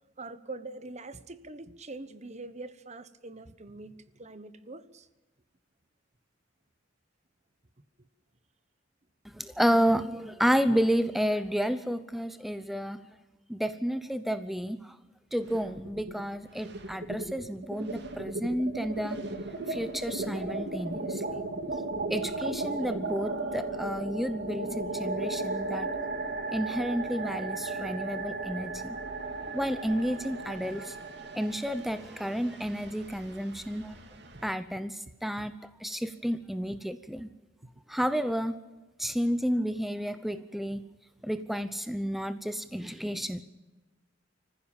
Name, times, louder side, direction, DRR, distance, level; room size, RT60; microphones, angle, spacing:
voice 1, 0.2-5.1 34.3-34.5 37.6-37.7 39.0-39.2, right 2 dB, 35° right, 1.1 m, -44 dB
voice 2, 9.3-13.0 13.5-15.0 15.3-19.2 19.7-21.4 22.1-25.9 26.5-29.0 29.5-31.0 31.3-34.0 34.4-35.5 35.8-37.3 37.9-38.5 39.0-40.8 41.2-43.4, equal, ahead, 0.7 m, -31 dB
sound 1, 15.4-16.2 16.5-34.5, right 2 dB, 60° right, 2.5 m, -36 dB
25.0 x 15.0 x 8.9 m
head